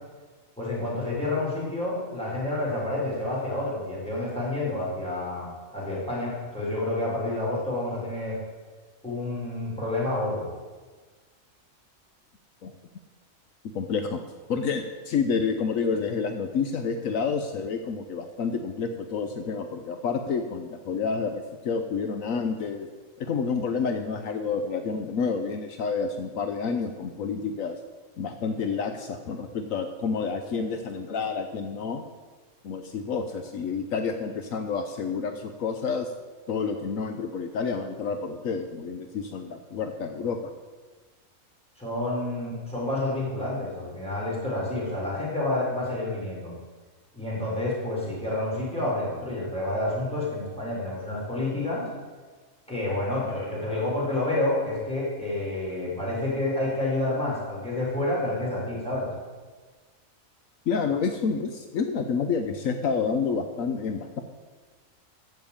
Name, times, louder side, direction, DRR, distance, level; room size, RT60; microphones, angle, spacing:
voice 1, 0.6-8.4 9.0-10.5 41.8-46.5 47.1-51.8 52.7-59.1, left 2 dB, 5° left, -7 dB, 5.1 m, -29 dB
voice 2, 13.7-14.2 14.5-22.9 23.2-27.8 28.2-32.0 32.6-36.1 36.5-40.4 60.7-64.2, left 5 dB, 75° left, 7 dB, 1.2 m, -29 dB
14.5 x 6.0 x 8.7 m, 1.4 s
omnidirectional pair, 1.4 m